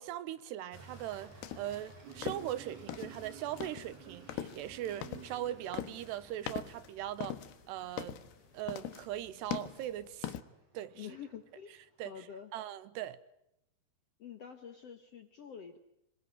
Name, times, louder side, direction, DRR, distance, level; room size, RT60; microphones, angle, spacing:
voice 1, 0.0-7.4 7.7-8.2 8.5-10.4 10.7-11.1 12.0-12.3 12.5-13.2, right 12 dB, 90° right, 3.3 m, -40 dB
sound 1, 0.7-10.4, left 11 dB, 85° left, 3.3 m, -42 dB
sound 2, 0.7-12.5, right 2 dB, 45° right, 7.0 m, -59 dB
Insect, 2.0-7.0, right 8 dB, 70° right, 5.3 m, -54 dB
voice 2, 10.9-11.8 12.0-12.5 14.2-15.8, left 8 dB, 60° left, 1.7 m, -47 dB
26.5 x 22.5 x 9.1 m
omnidirectional pair, 4.7 m